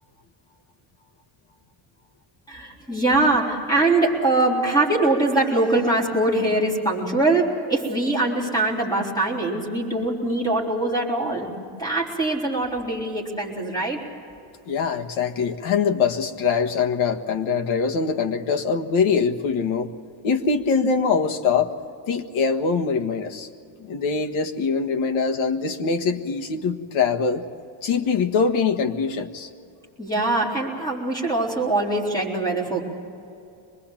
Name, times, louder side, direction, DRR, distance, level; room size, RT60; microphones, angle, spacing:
voice 1, 2.5-11.5 11.8-14.0 30.0-32.8, right 2 dB, 10° left, -3 dB, 4.1 m, -22 dB
voice 2, 14.6-19.9 20.2-21.7 22.1-23.5 23.8-27.5 27.8-29.5, left 5 dB, 85° left, 7 dB, 1.6 m, -23 dB
24.5 x 20.5 x 7.4 m, 2.5 s
cardioid pair, 175°, 47 cm